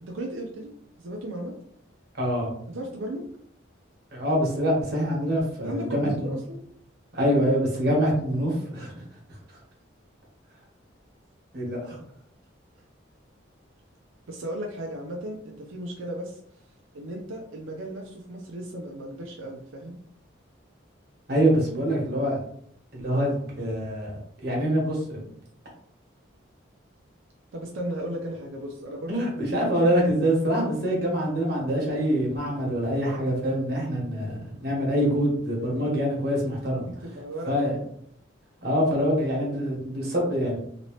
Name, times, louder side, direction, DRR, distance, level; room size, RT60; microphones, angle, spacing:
voice 1, 0.0-1.6 2.7-3.2 5.6-6.6 14.3-16.4 16.9-19.9 27.5-29.2 35.6-35.8 36.8-37.9, right 1 dB, 85° right, 0 dB, 0.5 m, -35 dB
voice 2, 2.1-2.5 4.1-6.3 7.1-8.9 11.5-12.0 21.3-22.4 22.9-24.1 24.4-25.3 29.1-36.8 37.5-37.7 38.6-40.6, equal, 50° right, -3 dB, 1.3 m, -25 dB
2.9 x 2.8 x 3.0 m, 0.65 s
head